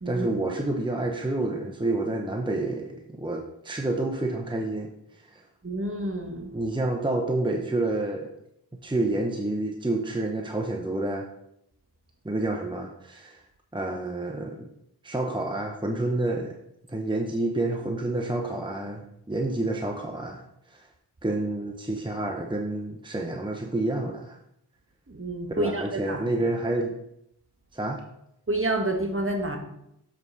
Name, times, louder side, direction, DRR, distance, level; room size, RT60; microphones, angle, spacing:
voice 1, 0.1-5.4 6.5-8.3 8.7-11.3 12.2-13.4 13.7-14.7 15.0-16.6 16.9-20.9 21.2-24.4 25.6-26.9 27.7-28.0, right 2 dB, 10° right, 2 dB, 0.9 m, -29 dB
voice 2, 5.6-6.5 25.1-26.2 28.5-29.6, right 1 dB, 30° right, 3 dB, 1.4 m, -29 dB
7.5 x 4.8 x 5.8 m, 0.80 s
wide cardioid pair, 50°, 41 cm